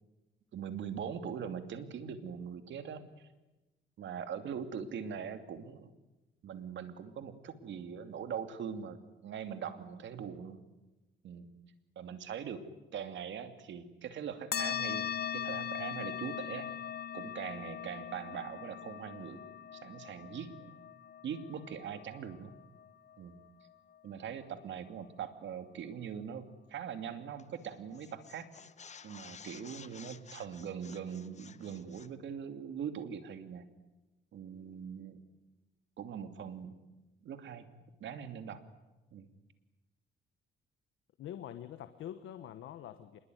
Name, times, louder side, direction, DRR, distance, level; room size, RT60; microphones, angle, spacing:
voice 1, 0.5-3.3 4.0-5.9 6.4-10.6 11.2-11.4 12.0-12.6 12.9-16.7 17.1-19.4 19.7-20.8 21.2-22.5 23.2-23.4 24.0-28.5 29.0-33.6 34.3-35.2 36.0-36.7 37.2-37.7 38.0-38.6 39.1-39.3, right 7 dB, 70° right, 9 dB, 2.7 m, -42 dB
sound 1, 14.5-23.4, left 9 dB, 55° left, 1.3 m, -40 dB
sound 2, 27.4-27.6 27.9-32.2, left 6 dB, 35° left, 1.1 m, -53 dB
voice 2, 41.2-43.2, left 11 dB, 80° left, 10 dB, 1.4 m, -45 dB
26.5 x 21.5 x 9.4 m, 1.1 s
cardioid pair, 90°, 20 cm